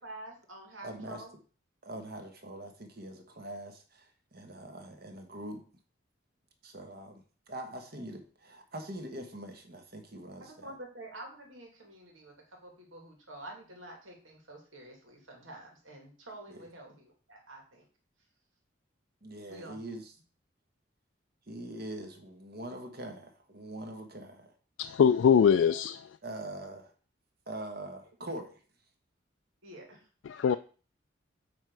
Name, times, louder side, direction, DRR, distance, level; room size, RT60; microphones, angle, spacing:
voice 1, 0.0-1.3 10.4-17.8 19.5-20.0 29.6-30.1, right 1 dB, 90° right, 1 dB, 2.4 m, -48 dB
voice 2, 0.8-1.2 1.8-5.6 6.6-10.7 16.5-16.6 19.2-20.1 21.5-24.5 26.2-26.9 27.5-28.6, right 1 dB, 50° right, 5 dB, 1.3 m, -43 dB
voice 3, 24.8-26.1 30.3-30.6, left 7 dB, 75° left, 9 dB, 0.3 m, -23 dB
8.9 x 3.6 x 4.7 m, 0.40 s
head